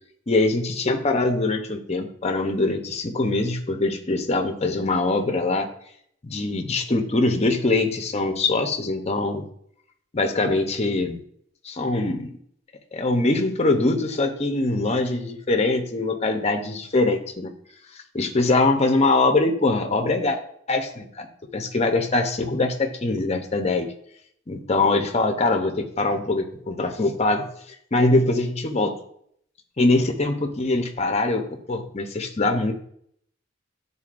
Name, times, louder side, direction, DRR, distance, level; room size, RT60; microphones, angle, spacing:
voice 1, 0.3-5.7 6.2-9.5 10.1-11.2 11.6-12.4 12.9-17.5 18.1-20.4 20.7-21.3 21.5-23.9 24.5-27.5 27.9-28.9 29.8-32.7, left 2 dB, 35° left, 5 dB, 0.7 m, -23 dB
10.0 x 4.0 x 2.5 m, 0.68 s
head